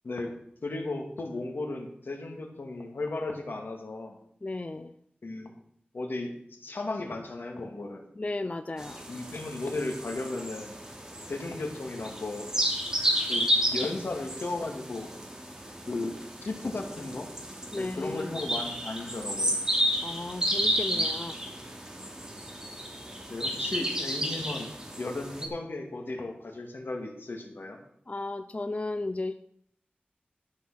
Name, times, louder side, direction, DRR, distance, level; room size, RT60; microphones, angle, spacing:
voice 1, 0.6-4.2 5.2-5.5 5.9-6.3 6.6-8.0 9.1-10.8 11.3-12.5 13.3-15.1 15.9-17.3 17.7-19.6 20.9-21.1 23.3-24.7 25.0-27.8, left 2 dB, 80° left, 3 dB, 2.3 m, -35 dB
voice 2, 4.4-4.9 8.2-9.0 17.7-18.3 20.0-21.3 28.1-29.3, left 2 dB, 40° left, 9 dB, 0.6 m, -34 dB
sound 1, 8.8-25.5, equal, 20° right, 2.7 m, -32 dB
13.0 x 6.5 x 6.5 m, 0.68 s
wide cardioid pair, 70°, 3 cm